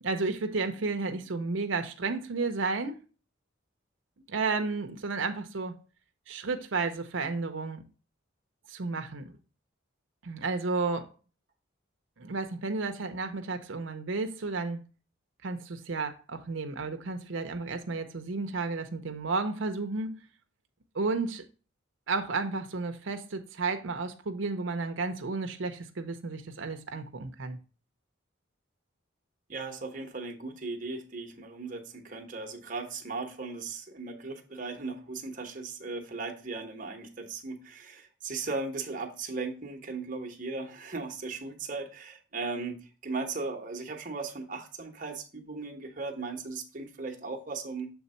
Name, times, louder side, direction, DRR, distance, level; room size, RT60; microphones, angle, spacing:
voice 1, 0.0-3.0 4.3-5.8 6.3-7.8 8.7-9.3 10.2-11.1 12.2-14.8 15.4-20.2 20.9-21.4 22.1-27.6, right 3 dB, 75° right, 0.7 m, -32 dB
voice 2, 29.5-47.9, right 3 dB, 40° right, 0.9 m, -37 dB
7.1 x 3.6 x 4.1 m
head